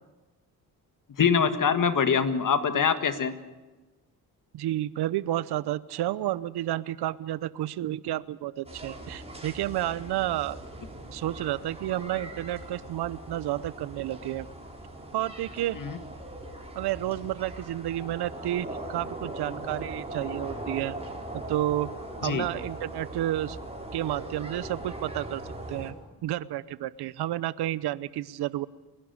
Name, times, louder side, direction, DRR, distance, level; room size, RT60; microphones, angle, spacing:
voice 1, 1.2-3.3 15.7-16.0 22.2-22.5, left 6 dB, 55° left, 10 dB, 1.9 m, -24 dB
voice 2, 4.5-10.6 11.1-14.5 15.1-15.8 16.8-20.9 21.3-21.9 22.2-23.6 23.9-25.4 25.7-25.9 26.2-28.7, right 14 dB, 85° right, 19 dB, 0.8 m, -31 dB
sound 1, 8.6-25.9, right 1 dB, 15° right, 5.0 m, -40 dB
30.0 x 11.5 x 9.6 m, 1.2 s
cardioid pair, 75°, 38 cm